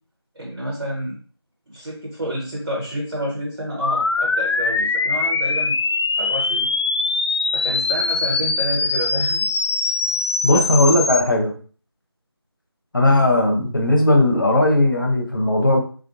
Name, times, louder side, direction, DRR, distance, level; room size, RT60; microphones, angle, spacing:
voice 1, 0.3-1.2 1.7-5.8 6.2-6.7 7.5-9.5 10.5-10.7, equal, 60° right, -4 dB, 0.9 m, -29 dB
sound 1, 3.8-11.2, left 3 dB, 75° left, 0.4 m, -22 dB
voice 2, 10.4-11.5 12.9-15.8, left 1 dB, 50° left, 1 dB, 0.8 m, -17 dB
3.5 x 2.3 x 2.6 m, 0.41 s
figure-of-eight pair, 175°, 14 cm